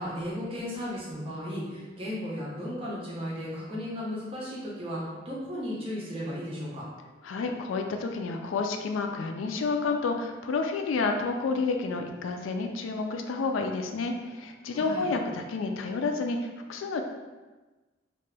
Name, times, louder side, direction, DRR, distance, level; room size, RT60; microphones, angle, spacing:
voice 1, 0.0-6.8 14.7-15.0, equal, 30° right, -6 dB, 0.7 m, -35 dB
voice 2, 7.2-17.0, left 4 dB, 90° left, 4 dB, 0.3 m, -30 dB
2.8 x 2.2 x 3.2 m, 1.2 s
head